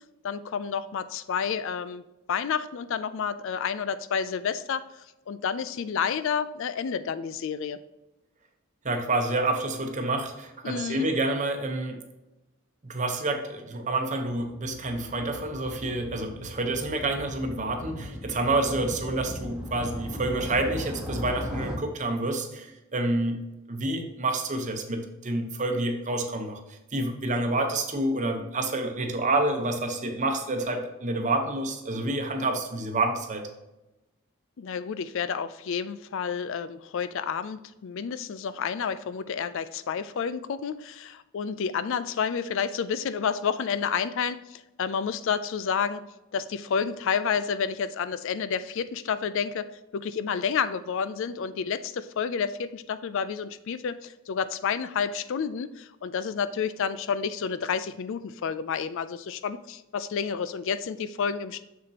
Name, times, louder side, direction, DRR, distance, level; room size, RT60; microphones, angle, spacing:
voice 1, 0.2-7.8 10.6-11.1 34.6-46.1 46.3-49.7 49.9-61.6, left 6 dB, 60° left, 14 dB, 0.4 m, -30 dB
voice 2, 8.8-12.0 12.8-23.4 23.7-33.5, right 2 dB, 35° right, 4 dB, 0.9 m, -28 dB
Motorcycle, 14.4-21.8, left 1 dB, 5° right, 1.2 m, -38 dB
6.8 x 6.8 x 2.9 m, 0.98 s
head